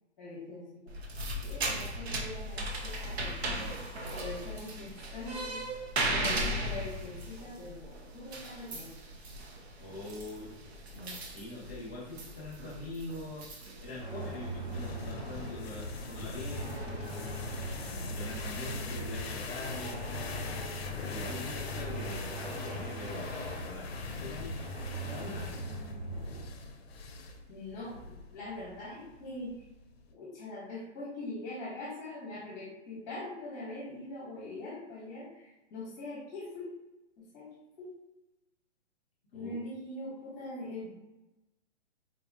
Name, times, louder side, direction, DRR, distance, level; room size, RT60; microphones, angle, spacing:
voice 1, 0.2-0.8 1.4-3.6 4.1-5.6 6.0-8.9 27.5-29.5 30.1-36.7 37.3-37.5 37.8-37.9 39.3-41.0, left 2 dB, 15° left, -7 dB, 1.0 m, -42 dB
sound 1, 0.9-19.0, right 1 dB, 60° right, 0.8 m, -38 dB
voice 2, 9.8-10.5 10.9-13.5 13.8-16.8 18.0-20.1 20.8-24.6 25.0-25.6 39.3-39.5, left 1 dB, 5° right, -20 dB, 0.5 m, -43 dB
sound 2, 14.0-26.4, right 1 dB, 45° right, 1.5 m, -40 dB
sound 3, 14.7-30.1, left 3 dB, 60° left, 0.6 m, -42 dB
4.0 x 2.9 x 2.5 m, 1.0 s
hypercardioid pair, 175°, 35 cm